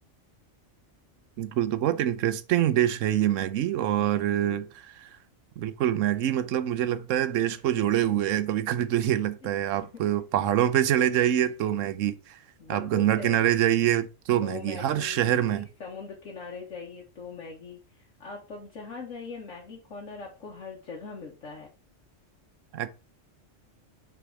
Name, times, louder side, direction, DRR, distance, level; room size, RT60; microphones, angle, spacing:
voice 1, 1.4-5.2 5.6-12.4 12.7-15.7 22.7-22.9, right 11 dB, 85° right, 1.0 m, -25 dB
voice 2, 3.7-4.7 7.8-7.9 9.4-9.5 9.9-10.0 10.4-10.7 12.6-13.5 14.4-21.7, left 4 dB, 80° left, 1.5 m, -42 dB
5.9 x 3.5 x 4.7 m
omnidirectional pair, 1.3 m